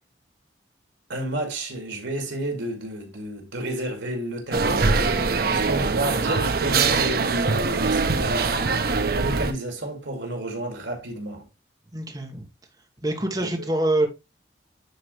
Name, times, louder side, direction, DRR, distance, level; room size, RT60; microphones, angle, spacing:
voice 1, 1.1-4.9 5.5-8.8 9.1-11.5 13.4-13.7, right 1 dB, 80° right, 2.3 m, -31 dB
sound 1, 4.5-9.5, right 4 dB, 55° right, 0.7 m, -22 dB
voice 2, 11.9-12.5 13.0-14.1, right 1 dB, 20° right, 1.4 m, -25 dB
9.5 x 4.0 x 3.2 m
head